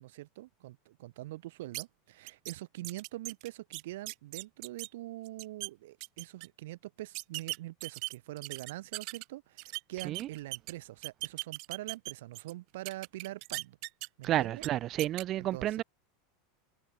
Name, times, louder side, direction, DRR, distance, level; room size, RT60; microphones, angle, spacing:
voice 1, 0.0-13.8 14.2-14.6 15.5-15.8, right 17 dB, 75° right, 2.2 m, -44 dB
sound 1, 1.7-1.8 2.3-2.5 2.8-4.9 5.3-5.7 6.0-6.5 7.1-9.2 9.6-10.7 11.0-12.5 12.9-14.3 14.6-14.7 15.0-15.2, right 29 dB, 50° right, 6.0 m, -39 dB
voice 2, 14.2-15.8, right 13 dB, 35° right, 0.9 m, -31 dB
supercardioid pair, 150°, 0 cm